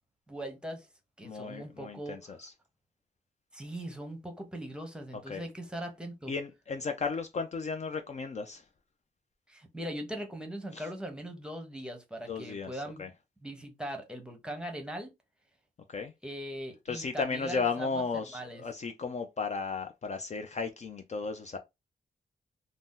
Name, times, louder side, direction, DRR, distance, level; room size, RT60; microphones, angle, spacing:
voice 1, 0.3-0.9 1.2-2.4 3.5-6.3 9.5-13.1 13.4-15.1 16.2-18.0 18.3-18.6, right 1 dB, 5° right, 0.8 m, -40 dB
voice 2, 1.2-2.5 5.3-5.4 6.3-8.6 10.7-10.8 12.3-13.1 15.9-16.1 16.9-21.6, left 4 dB, 45° left, 0.4 m, -35 dB
2.7 x 2.0 x 3.6 m
wide cardioid pair, 100°, 17 cm